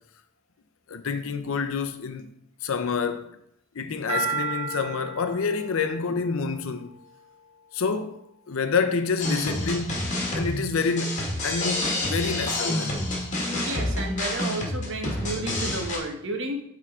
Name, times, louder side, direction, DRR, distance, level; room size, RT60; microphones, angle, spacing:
voice 1, 0.9-2.3 2.6-3.4 3.7-6.9 7.7-13.0, left 5 dB, 70° left, 0.6 m, -28 dB
sound 1, 4.1-7.3, right 4 dB, 30° right, 1.1 m, -33 dB
sound 2, 9.2-16.0, left 1 dB, 35° left, 1.6 m, -28 dB
voice 2, 13.4-16.6, right 2 dB, 60° right, 1.1 m, -32 dB
8.7 x 3.7 x 3.6 m
head